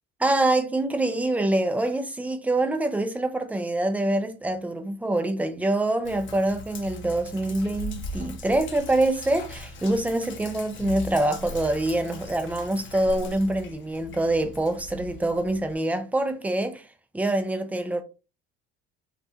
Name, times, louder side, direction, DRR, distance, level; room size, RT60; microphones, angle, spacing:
voice 1, 0.2-16.8 17.1-18.0, right 1 dB, 5° right, 0.5 m, -25 dB
Sink (filling or washing), 6.0-15.7, left 2 dB, 40° left, 0.7 m, -40 dB
3.0 x 2.4 x 2.6 m
hypercardioid pair, 75°, 30 cm